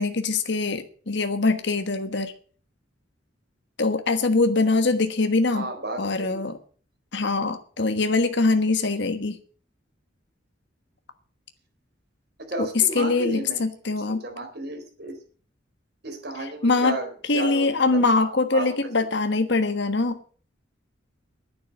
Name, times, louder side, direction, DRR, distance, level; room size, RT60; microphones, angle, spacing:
voice 1, 0.0-2.3 3.8-5.7 6.0-6.6 7.1-9.4 12.6-14.2 16.4-17.0 17.2-20.2, left 3 dB, 65° left, 8 dB, 1.3 m, -23 dB
voice 2, 5.5-6.5 12.4-13.7 14.1-15.2 16.0-18.0 18.5-18.8, right 2 dB, 55° right, 5 dB, 4.4 m, -33 dB
11.0 x 10.0 x 8.7 m, 0.43 s
head